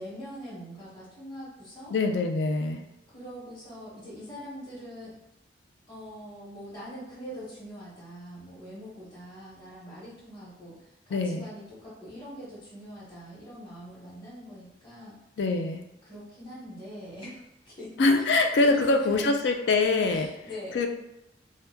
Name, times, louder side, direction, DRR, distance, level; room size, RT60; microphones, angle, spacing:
voice 1, 0.0-1.9 3.1-5.1 5.9-15.2 16.0-17.4 17.6-17.9 18.6-19.3 20.1-20.8, equal, 25° left, -10 dB, 1.0 m, -43 dB
voice 2, 1.9-2.8 11.1-11.5 15.4-15.8 18.0-20.3 20.7-20.9, left 3 dB, 75° left, 4 dB, 0.4 m, -24 dB
2.8 x 2.2 x 3.5 m, 0.86 s
head